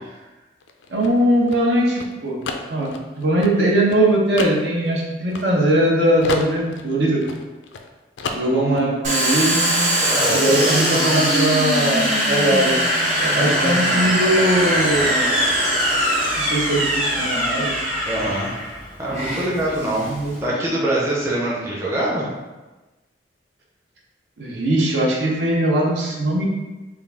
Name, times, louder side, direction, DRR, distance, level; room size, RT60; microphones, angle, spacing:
sound 1, 0.6-5.9 6.2-7.9 8.2-8.9, left 4 dB, 85° left, 0.3 m, -32 dB
voice 1, 0.9-2.4 2.7-2.9 3.2-7.2 8.3-9.9 10.3-12.8 13.2-15.3 16.4-17.8 20.1-20.3 20.7-20.9 24.4-26.4, right 1 dB, 70° right, -3 dB, 0.8 m, -20 dB
voice 2, 8.3-8.9 10.0-11.2 13.3-14.1 18.0-18.5 19.0-20.1 20.4-22.3, right 1 dB, 15° right, -6 dB, 0.6 m, -25 dB
Domestic sounds home sounds, 9.0-20.4, equal, 40° right, 1.0 m, -21 dB
3.6 x 2.3 x 3.4 m, 1.1 s
head